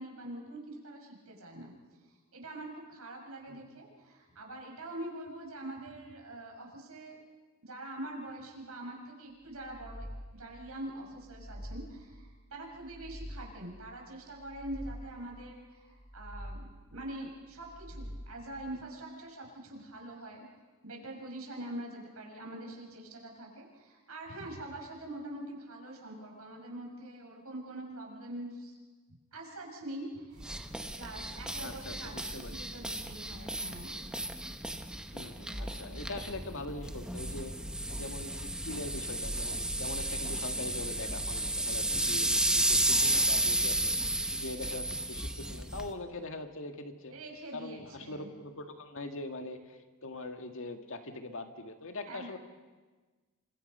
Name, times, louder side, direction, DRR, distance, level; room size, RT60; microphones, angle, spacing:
voice 1, 0.0-1.7 2.3-7.2 7.6-10.1 10.3-20.5 20.8-28.8 29.3-34.0 35.5-36.0 42.6-43.5 47.1-48.3 52.1-52.4, right 1 dB, 75° right, 0 dB, 6.7 m, -44 dB
voice 2, 3.5-3.8 31.6-32.6 35.1-37.5 37.9-44.0 44.3-47.1 47.5-52.4, left 2 dB, 65° left, 6 dB, 2.0 m, -42 dB
sound 1, 9.5-10.6 11.1-12.2 12.7-13.8 14.3-15.4 15.9-17.0 17.5-18.6, equal, 35° right, 3.9 m, -46 dB
sound 2, 30.4-45.9, right 1 dB, 5° right, 1.2 m, -33 dB
29.0 x 25.5 x 5.6 m, 1.3 s
head